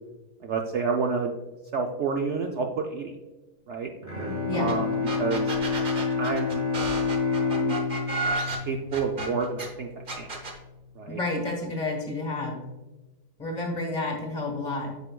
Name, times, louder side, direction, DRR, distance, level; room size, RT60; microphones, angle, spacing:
voice 1, 0.4-1.3 1.7-3.1 3.7-3.9 4.5-5.5 6.2-6.6 7.4-7.8 8.7-9.9 10.1-10.3 11.0-11.2, right 5 dB, 85° right, 2 dB, 0.6 m, -29 dB
Bowed string instrument, 4.0-9.7, left 4 dB, 20° right, 2.0 m, -28 dB
sound 1, 4.7-4.8 5.1-9.7 10.1-10.6, right 3 dB, 35° right, 0.9 m, -32 dB
voice 2, 11.1-12.6 13.4-14.9, left 2 dB, 30° left, 1 dB, 1.3 m, -30 dB
8.8 x 5.3 x 2.2 m, 1.1 s
omnidirectional pair, 1.8 m